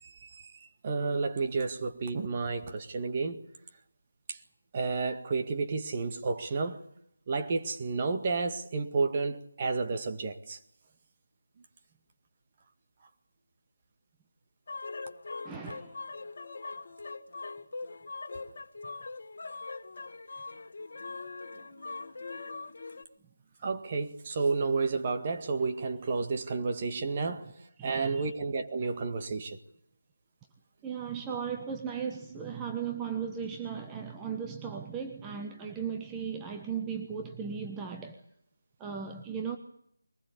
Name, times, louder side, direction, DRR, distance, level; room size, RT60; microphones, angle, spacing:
voice 1, 0.0-3.4 4.3-4.4 4.7-6.8 7.3-10.6 23.6-27.5 27.8-29.6, right 4 dB, 30° right, 2.0 m, -31 dB
sound 1, 14.7-23.0, left 3 dB, 50° left, 2.0 m, -41 dB
voice 2, 15.4-16.0 27.8-28.3 30.8-38.2 38.8-39.6, right 7 dB, 10° right, 1.2 m, -37 dB
22.5 x 20.0 x 8.5 m
figure-of-eight pair, 165°, 0 cm